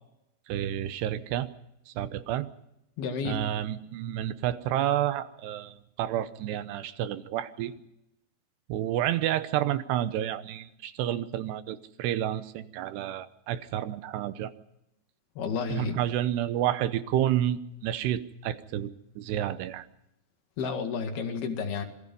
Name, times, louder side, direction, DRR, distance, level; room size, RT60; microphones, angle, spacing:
voice 1, 0.5-1.5 1.9-2.5 3.2-7.7 8.7-14.5 15.7-19.9, right 12 dB, 80° right, 13 dB, 2.9 m, -30 dB
voice 2, 3.0-3.4 15.4-16.0 20.6-21.9, left 5 dB, 70° left, 5 dB, 3.9 m, -31 dB
27.0 x 20.0 x 5.4 m, 0.85 s
omnidirectional pair, 4.9 m